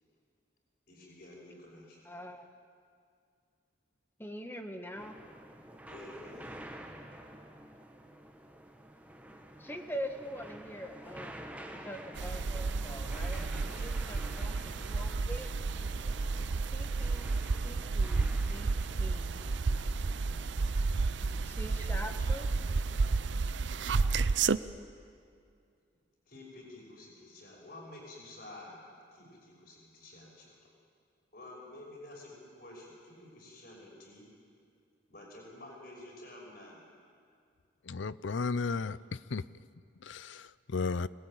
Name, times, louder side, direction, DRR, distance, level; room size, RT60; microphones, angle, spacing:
voice 1, 0.9-2.0 5.9-6.7 22.7-23.2 23.8-24.3 26.3-28.9 29.1-30.6 31.3-34.3 35.1-36.8, left 1 dB, 50° left, -1 dB, 6.1 m, -50 dB
voice 2, 2.0-2.5 4.2-5.2 9.6-15.5 16.7-17.3 17.6-19.4 21.4-22.5, equal, 10° left, 5 dB, 1.5 m, -44 dB
sound 1, 4.9-23.2, right 1 dB, 10° right, 1.7 m, -49 dB
sound 2, 12.2-24.6, right 4 dB, 65° right, 0.5 m, -31 dB
voice 3, 37.9-39.4 40.0-41.1, left 4 dB, 75° left, 18 dB, 0.6 m, -34 dB
25.0 x 19.5 x 9.0 m, 2.3 s
head